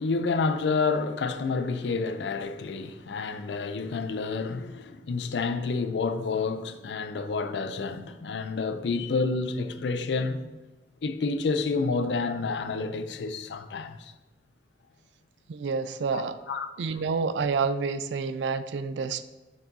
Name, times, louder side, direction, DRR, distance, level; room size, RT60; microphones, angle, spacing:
voice 1, 0.0-10.5 11.0-14.1 16.1-16.7, left 4 dB, 75° left, 0.4 m, -29 dB
voice 2, 15.5-16.4 16.8-19.2, right 5 dB, 90° right, 0.4 m, -28 dB
7.3 x 5.9 x 2.7 m
head